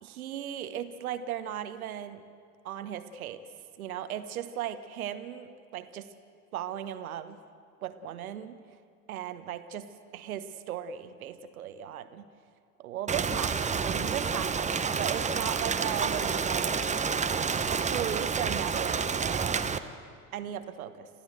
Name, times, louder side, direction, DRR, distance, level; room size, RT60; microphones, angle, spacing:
voice 1, 0.0-2.2 2.6-3.4 3.8-6.1 6.5-7.4 7.8-8.6 9.1-9.9 10.1-12.3 12.8-16.9 17.7-19.7 20.3-21.1, right 10 dB, 70° right, 12 dB, 1.2 m, -37 dB
Rain, 13.1-19.8, right 5 dB, 15° right, 0.9 m, -29 dB
28.0 x 14.5 x 7.9 m, 2.2 s
figure-of-eight pair, 65°, 45 cm